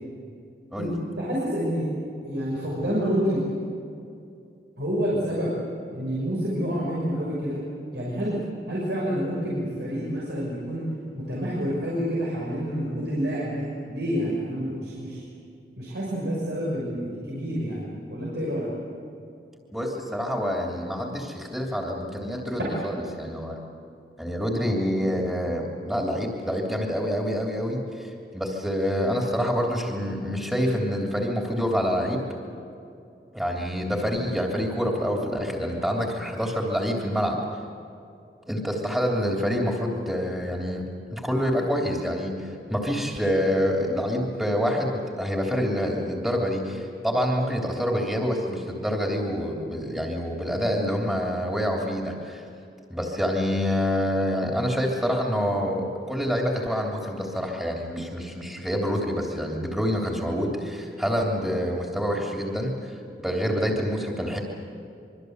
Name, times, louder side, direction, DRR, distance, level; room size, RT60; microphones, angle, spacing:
voice 1, 1.2-1.9 2.2-3.4 4.8-5.5 5.9-7.6 7.9-8.4 8.7-10.9 11.1-15.2 15.8-18.7, equal, 80° right, -5 dB, 6.5 m, -28 dB
voice 2, 19.7-23.6 24.2-32.2 33.3-37.4 38.5-40.8 41.1-42.3 42.7-52.4 52.9-62.9 63.2-64.4, equal, 5° right, -1 dB, 3.1 m, -27 dB
26.0 x 24.0 x 8.1 m, 2.6 s
head